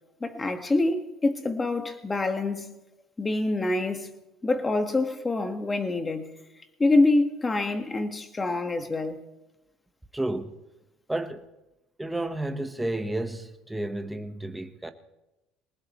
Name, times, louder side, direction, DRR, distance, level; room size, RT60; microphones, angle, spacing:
voice 1, 0.2-2.8 3.2-4.1 4.4-6.3 6.8-9.2, left 2 dB, 20° left, 1.9 m, -26 dB
voice 2, 10.1-10.5 11.1-11.5 12.0-14.9, right 1 dB, 10° right, 1.4 m, -31 dB
21.5 x 19.0 x 3.3 m
supercardioid pair, 100°, 0 cm